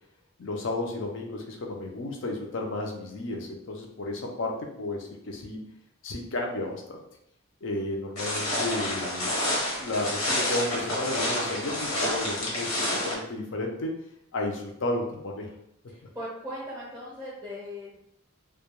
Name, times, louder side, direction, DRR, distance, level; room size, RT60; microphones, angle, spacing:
voice 1, 0.4-5.6 6.0-7.0 7.6-9.3 9.8-14.0 14.3-15.5, left 2 dB, 60° left, 1 dB, 0.5 m, -33 dB
sound 1, 8.2-13.1, left 1 dB, 75° left, 0.9 m, -29 dB
voice 2, 15.9-18.0, equal, 10° right, -9 dB, 0.6 m, -39 dB
2.2 x 2.2 x 2.9 m, 0.75 s
head